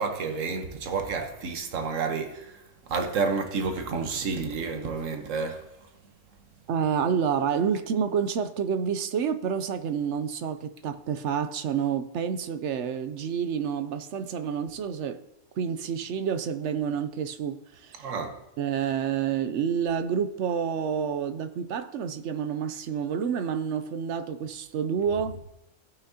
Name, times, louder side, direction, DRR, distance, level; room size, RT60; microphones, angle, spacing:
voice 1, 0.0-5.9 18.0-18.4, right 4 dB, 85° right, 1.4 m, -30 dB
voice 2, 6.7-15.2 15.6-18.1 18.6-25.3, right 7 dB, 70° right, 0.9 m, -29 dB
17.0 x 5.8 x 2.8 m
omnidirectional pair, 1.3 m